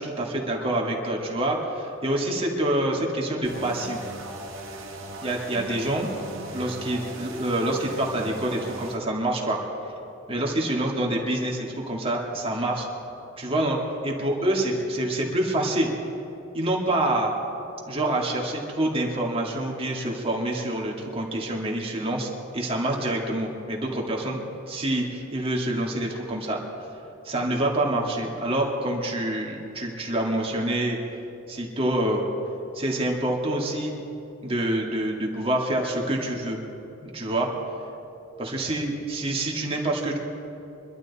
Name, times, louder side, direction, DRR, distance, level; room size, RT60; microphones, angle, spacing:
voice 1, 0.0-4.0 5.2-6.1 6.5-9.6 10.3-12.9 13.4-15.9 16.5-17.3 17.9-26.6 27.2-31.0 31.5-32.2 32.7-33.9 34.4-36.6 37.0-37.5 38.4-40.2, right 1 dB, 30° right, -1 dB, 2.1 m, -26 dB
sound 1, 3.4-9.0, right 2 dB, 70° right, 1.8 m, -39 dB
24.0 x 12.0 x 4.2 m, 2.9 s
head